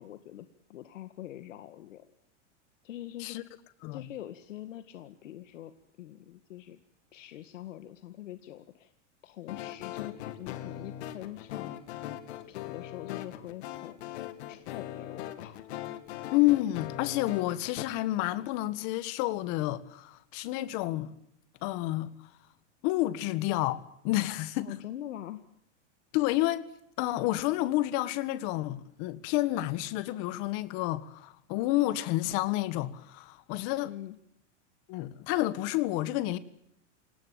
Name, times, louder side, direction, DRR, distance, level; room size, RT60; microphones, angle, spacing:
voice 1, 0.0-2.0 2.8-3.4 3.9-5.7 6.0-6.8 7.1-8.9 9.2-11.7 12.5-14.0 14.5-15.7 24.6-25.4 33.8-34.2, left 13 dB, 85° left, 2.0 m, -44 dB
sound 1, 9.5-17.8, left 12 dB, 60° left, 2.6 m, -40 dB
voice 2, 16.3-21.1 21.6-22.1 22.8-24.8 26.1-26.7 27.0-33.9 34.9-36.4, left 16 dB, 40° left, 1.7 m, -29 dB
28.0 x 18.5 x 8.8 m
supercardioid pair, 160°, 37 cm